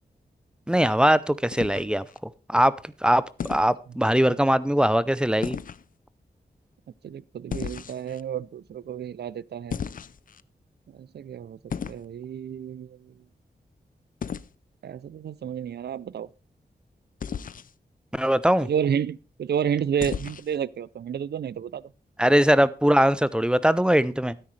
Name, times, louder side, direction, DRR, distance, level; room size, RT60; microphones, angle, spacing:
voice 1, 0.7-2.0 2.5-3.2 3.5-5.6 18.1-18.7 22.2-24.4, equal, 5° right, 0.4 m, -21 dB
sound 1, 1.5-2.2 3.4-3.7 5.4-5.8 7.5-8.2 9.7-10.4 11.7-12.1 14.2-14.5 17.2-17.7 20.0-20.6, left 7 dB, 55° left, 0.4 m, -34 dB
voice 2, 7.0-9.8 11.0-11.6 11.9-13.1 14.8-16.3 18.6-21.8, right 8 dB, 75° right, 0.4 m, -30 dB
12.5 x 9.7 x 3.2 m
wide cardioid pair, 135°, 17 cm